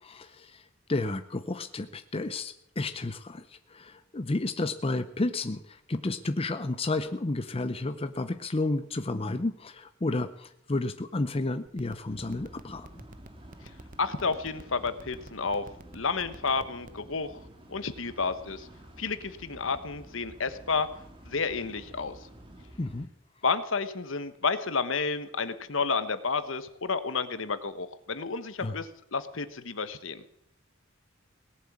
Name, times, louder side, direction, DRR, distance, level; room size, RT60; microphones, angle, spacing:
voice 1, 0.0-13.0 22.8-23.1 28.6-28.8, left 2 dB, 30° left, 10 dB, 0.6 m, -32 dB
sound 1, 11.7-17.0, right 2 dB, 40° right, 0.8 m, -47 dB
sound 2, 12.0-23.1, right 1 dB, 25° right, 2.0 m, -50 dB
voice 2, 14.0-15.7 15.9-17.3 17.7-18.7 19.0-20.9 21.3-22.2 23.4-30.2, left 4 dB, 70° left, 12 dB, 1.2 m, -31 dB
18.0 x 7.7 x 8.6 m, 0.75 s
head